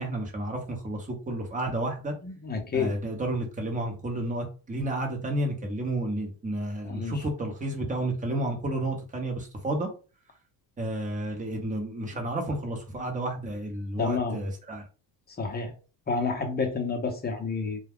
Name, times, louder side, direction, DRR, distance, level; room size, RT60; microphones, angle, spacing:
voice 1, 0.0-2.1 2.7-9.9 10.8-14.8, right 1 dB, 15° right, 0.9 m, -31 dB
voice 2, 2.2-3.0 6.8-7.3 14.0-14.4 15.3-15.7 16.1-17.8, left 4 dB, 20° left, 0.7 m, -29 dB
2.3 x 2.2 x 3.5 m
cardioid pair, 125°, 45 cm